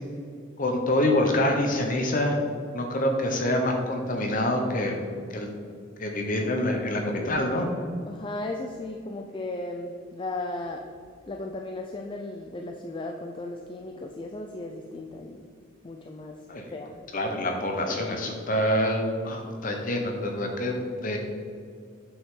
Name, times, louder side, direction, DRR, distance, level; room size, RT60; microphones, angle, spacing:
voice 1, 0.6-2.4 2.7-5.0 5.3-5.5 6.0-7.7 16.5-16.7 17.1-21.2, left 1 dB, 45° left, 2 dB, 1.1 m, -26 dB
voice 2, 8.1-10.9 11.3-15.5 15.8-16.4 16.7-16.9, left 2 dB, 25° left, 3 dB, 0.4 m, -36 dB
8.0 x 6.1 x 3.8 m, 2.3 s
head